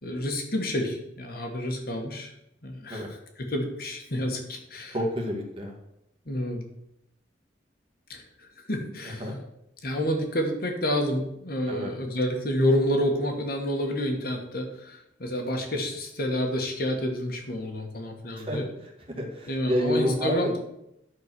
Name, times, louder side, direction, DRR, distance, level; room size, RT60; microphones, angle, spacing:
voice 1, 0.0-2.3 2.6-3.1 3.4-4.9 6.3-6.6 8.1-9.3 9.8-18.7 19.5-20.6, left 1 dB, 55° left, 2 dB, 1.7 m, -29 dB
voice 2, 4.9-5.7 9.2-9.4 11.7-11.9 18.4-18.9 19.2-20.6, equal, 30° right, -1 dB, 1.9 m, -29 dB
11.0 x 4.6 x 6.2 m, 0.83 s
head